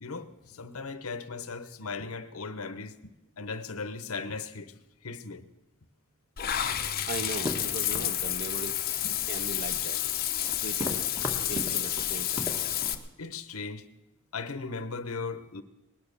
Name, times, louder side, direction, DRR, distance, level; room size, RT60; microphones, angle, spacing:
voice 1, 0.0-2.9 3.4-4.7 5.0-5.4 9.0-9.1 13.2-13.8 14.3-15.6, left 4 dB, 85° left, 1.1 m, -37 dB
Water / Bathtub (filling or washing), 6.4-12.9, left 11 dB, 45° left, 0.9 m, -30 dB
sound 1, 7.0-13.0, equal, 10° right, 2.2 m, -40 dB
voice 2, 7.0-8.9 9.2-10.0 10.5-11.1 11.5-12.5, right 3 dB, 45° right, 0.6 m, -39 dB
20.0 x 9.5 x 6.8 m
head